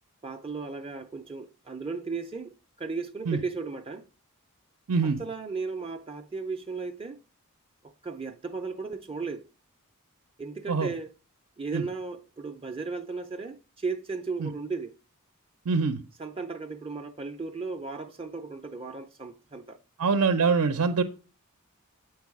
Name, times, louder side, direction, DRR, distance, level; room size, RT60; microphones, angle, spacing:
voice 1, 0.2-4.0 5.0-7.2 7.8-9.5 10.4-11.1 11.6-14.9 16.2-19.8, right 4 dB, 25° right, 0.5 m, -35 dB
voice 2, 4.9-5.2 10.7-10.9 11.7-11.8 14.4-14.5 15.7-16.0 20.0-21.0, right 5 dB, 75° right, 0.6 m, -24 dB
8.2 x 4.7 x 4.7 m
head